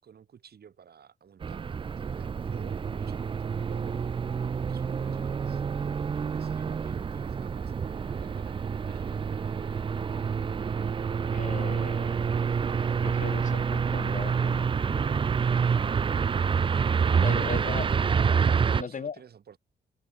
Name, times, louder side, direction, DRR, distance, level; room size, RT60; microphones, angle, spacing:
voice 1, 0.0-4.0 4.6-5.6 5.9-8.6 8.9-9.2 17.3-17.8 18.5-19.6, right 8 dB, 60° right, 6.6 m, -52 dB
sound 1, 1.4-18.8, right 6 dB, 30° right, 0.4 m, -28 dB
Wind instrument woodwind instrument, 7.1-13.8, right 10 dB, 90° right, 7.6 m, -57 dB
voice 2, 11.3-12.3 13.0-15.3 17.2-17.9 18.7-19.2, left 6 dB, 45° left, 1.8 m, -38 dB
wide cardioid pair, 130°, 19 cm